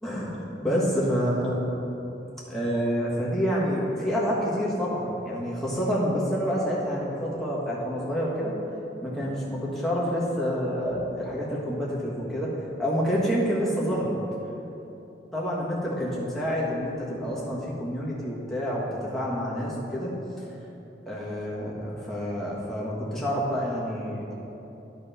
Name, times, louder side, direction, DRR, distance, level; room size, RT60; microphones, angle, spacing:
voice 1, 0.0-1.6 2.5-8.5 9.0-12.5 12.8-14.1 15.3-20.1 21.0-24.3, equal, ahead, -7 dB, 1.5 m, -28 dB
11.0 x 4.3 x 5.6 m, 3.0 s
head